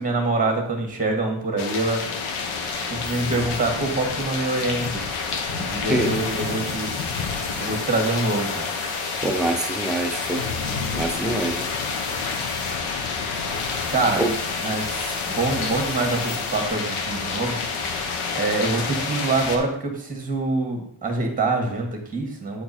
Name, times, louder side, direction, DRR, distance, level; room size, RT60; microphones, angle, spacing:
voice 1, 0.0-2.0 2.9-5.1 5.6-7.0 7.6-8.7 13.9-14.2 14.6-17.6 17.8-22.6, right 3 dB, 15° right, 2 dB, 1.9 m, -25 dB
sound 1, 1.6-19.6, left 5 dB, 85° left, 1.3 m, -28 dB
sound 2, 2.7-16.7, left 2 dB, 55° left, 1.9 m, -42 dB
voice 2, 9.2-10.4 10.9-11.7 14.2-14.3, right 2 dB, ahead, 3 dB, 0.5 m, -25 dB
8.7 x 4.6 x 4.3 m, 0.68 s
cardioid pair, 130°, 48 cm